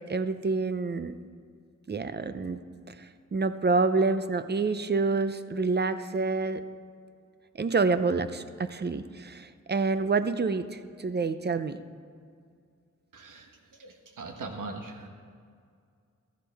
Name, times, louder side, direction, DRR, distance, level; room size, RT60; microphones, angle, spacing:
voice 1, 0.1-1.1 1.9-2.6 3.3-6.6 7.6-11.8, right 4 dB, 35° right, 12 dB, 0.6 m, -27 dB
voice 2, 13.1-15.1, right 3 dB, 85° right, 4 dB, 1.3 m, -41 dB
14.0 x 13.5 x 3.5 m, 2.2 s
cardioid pair, 60°, 31 cm